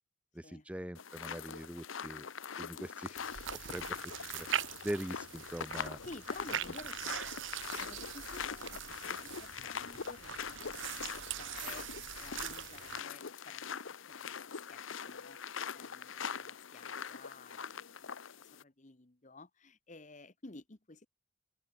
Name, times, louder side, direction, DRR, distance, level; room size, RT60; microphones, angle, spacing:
voice 1, 0.3-2.3 2.6-3.2 3.5-4.5 4.8-6.0, right 1 dB, 5° right, 0.5 m, -42 dB
sound 1, 0.9-18.6, left 6 dB, 75° left, 0.9 m, -43 dB
sound 2, 3.2-13.0, right 10 dB, 70° right, 0.8 m, -42 dB
voice 2, 6.0-7.3 7.7-11.9 12.2-13.8 14.1-15.4 15.7-18.1 18.4-21.1, left 3 dB, 35° left, 1.2 m, -53 dB
open air
head